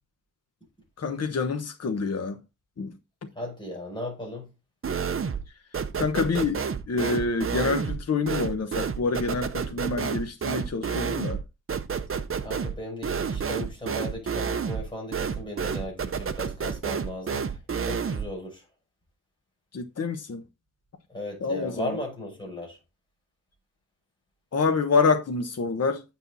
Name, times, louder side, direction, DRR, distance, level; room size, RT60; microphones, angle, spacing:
voice 1, 1.0-2.4 2.8-2.9 6.0-6.6 6.9-11.4 19.7-20.4 21.4-22.0 24.5-26.0, left 4 dB, 50° left, 1.1 m, -27 dB
voice 2, 3.3-4.5 12.4-17.5 17.8-18.6 21.1-22.8, left 1 dB, 15° left, 6.3 m, -37 dB
sound 1, 4.8-5.5 5.7-18.4, right 6 dB, 40° right, 0.7 m, -30 dB
8.9 x 6.3 x 4.1 m
wide cardioid pair, 120°, 32 cm